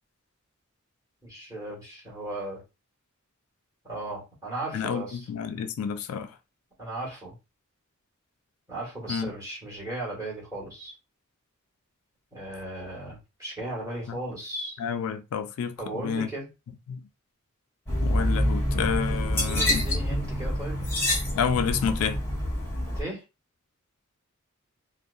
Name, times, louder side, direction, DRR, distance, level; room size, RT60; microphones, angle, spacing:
voice 1, 1.2-2.6 3.8-5.3 6.8-7.3 8.7-10.9 12.3-14.8 15.8-16.5 19.0-20.8 22.9-23.2, right 1 dB, 15° right, 1.3 m, -36 dB
voice 2, 4.7-6.3 9.1-9.3 14.1-14.2 14.8-16.3 16.9-17.0 18.0-19.8 21.3-22.2, left 7 dB, 80° left, 0.3 m, -29 dB
sound 1, 17.9-23.0, equal, 10° left, 1.0 m, -27 dB
2.7 x 2.1 x 2.3 m
head